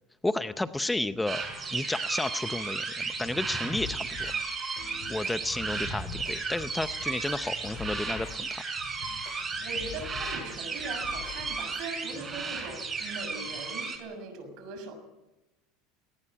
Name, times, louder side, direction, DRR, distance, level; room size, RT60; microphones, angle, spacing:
voice 1, 0.2-1.4 1.7-4.3 5.1-8.6, left 2 dB, 5° left, 11 dB, 0.7 m, -32 dB
sound 1, 1.3-14.0, right 4 dB, 20° right, 5.8 m, -34 dB
sound 2, 3.8-11.7, left 7 dB, 55° left, 3.4 m, -45 dB
voice 2, 9.6-15.0, right 3 dB, 60° right, 8 dB, 6.6 m, -40 dB
19.5 x 18.5 x 8.9 m, 0.99 s
supercardioid pair, 140°, 0 cm